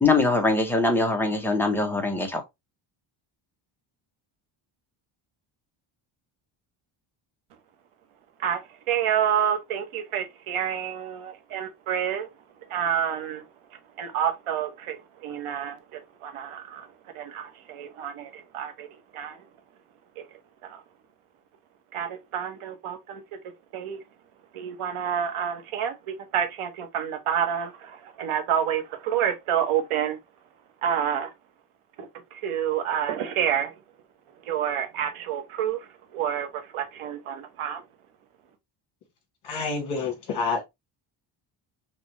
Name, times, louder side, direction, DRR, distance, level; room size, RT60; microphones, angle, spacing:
voice 1, 0.0-2.4, left 3 dB, 5° left, 0.7 m, -22 dB
voice 2, 8.9-12.3 12.7-13.4 14.0-16.9 17.1-18.9 19.1-19.4 20.2-20.3 20.6-20.8 21.9-23.2 23.7-24.0 24.5-30.2 30.8-31.3 32.0-33.7 34.5-37.8, right 9 dB, 80° right, 1.3 m, -28 dB
voice 3, 39.4-40.6, left 4 dB, 55° left, 2.6 m, -28 dB
6.0 x 2.4 x 3.0 m
cardioid pair, 165°, 49 cm